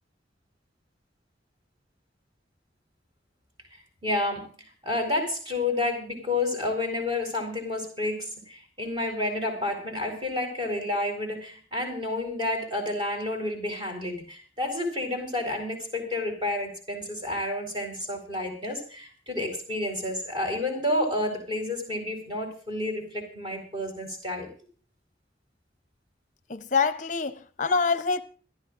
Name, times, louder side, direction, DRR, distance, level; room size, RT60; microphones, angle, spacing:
voice 1, 4.0-4.5 4.8-24.5, left 2 dB, 25° right, 4.3 m, -30 dB
voice 2, 26.5-28.2, left 5 dB, 40° left, 0.7 m, -25 dB
27.0 x 13.0 x 2.5 m
head